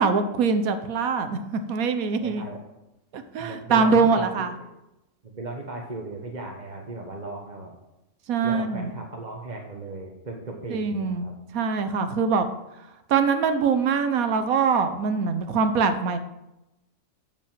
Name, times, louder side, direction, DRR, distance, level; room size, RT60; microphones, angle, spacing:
voice 1, 0.0-2.4 3.1-4.5 8.3-8.9 10.7-11.3 11.5-12.5 13.1-16.2, right 5 dB, 90° right, 9 dB, 1.3 m, -23 dB
voice 2, 2.2-2.6 3.4-4.3 5.2-7.7 8.4-11.3, right 2 dB, 35° right, 0 dB, 1.3 m, -36 dB
11.0 x 5.3 x 7.5 m, 0.92 s
omnidirectional pair, 1.5 m